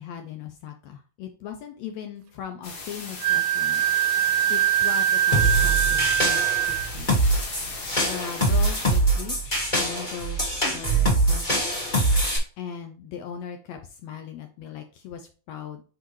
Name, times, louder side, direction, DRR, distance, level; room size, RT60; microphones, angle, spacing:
voice 1, 0.0-3.8 4.5-7.3 8.0-11.6 12.6-15.8, left 8 dB, 75° left, 6 dB, 1.8 m, -39 dB
sound 1, 2.6-9.0, left 3 dB, 50° left, 1.3 m, -37 dB
Wind instrument woodwind instrument, 3.2-6.9, right 12 dB, 80° right, 1.8 m, -23 dB
sound 2, 5.3-12.4, right 2 dB, 30° left, 0.8 m, -23 dB
6.4 x 4.8 x 3.1 m, 0.38 s
omnidirectional pair, 3.4 m